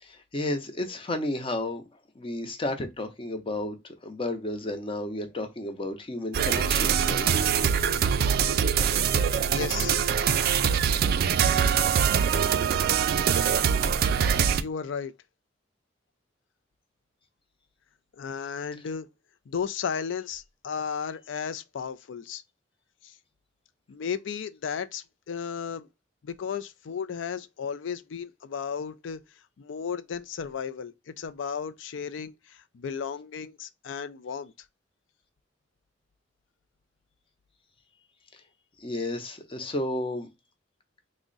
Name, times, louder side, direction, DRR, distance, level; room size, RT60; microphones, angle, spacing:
voice 1, 0.0-1.8 2.2-7.3 38.8-40.3, left 1 dB, 30° left, 0.6 m, -32 dB
sound 1, 6.3-14.6, right 7 dB, 55° right, 0.3 m, -23 dB
voice 2, 9.5-10.0 14.6-15.1 18.2-19.1 19.5-22.4 23.0-23.1 23.9-25.9 26.2-29.2 29.6-34.5, left 6 dB, 80° left, 0.4 m, -34 dB
3.5 x 2.1 x 3.8 m
head